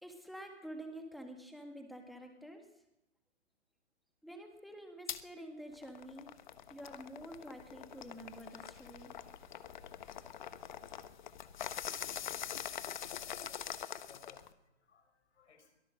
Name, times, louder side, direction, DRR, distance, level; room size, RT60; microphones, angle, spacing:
voice 1, 0.0-2.7 4.2-6.3 6.7-9.1, right 1 dB, ahead, 3 dB, 1.7 m, -48 dB
sound 1, 5.1-5.2 5.7-14.5, left 9 dB, 40° left, 1.2 m, -44 dB
voice 2, 14.1-15.8, left 4 dB, 75° left, 3 dB, 6.3 m, -64 dB
23.5 x 17.5 x 6.4 m, 0.88 s
hypercardioid pair, 160°, 35 cm